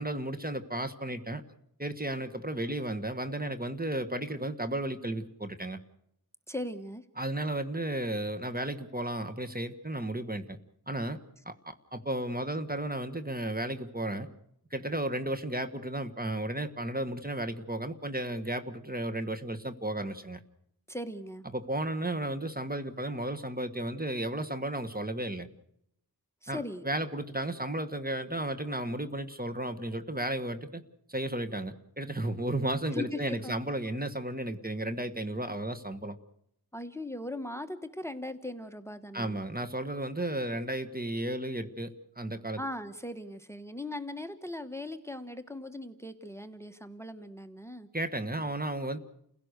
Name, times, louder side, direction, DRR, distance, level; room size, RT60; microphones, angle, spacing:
voice 1, 0.0-1.4 1.8-5.8 7.2-10.6 10.9-11.2 11.4-14.3 14.7-20.4 21.5-25.5 26.5-26.6 26.8-30.8 31.1-36.2 39.1-42.6 47.9-49.0, right 1 dB, 25° right, 8 dB, 1.5 m, -34 dB
voice 2, 6.5-7.0 20.9-21.5 26.4-26.8 32.9-33.5 36.7-39.4 42.6-47.9, left 1 dB, 5° left, 11 dB, 1.4 m, -39 dB
29.5 x 16.5 x 6.7 m, 0.75 s
wide cardioid pair, 60°, 39 cm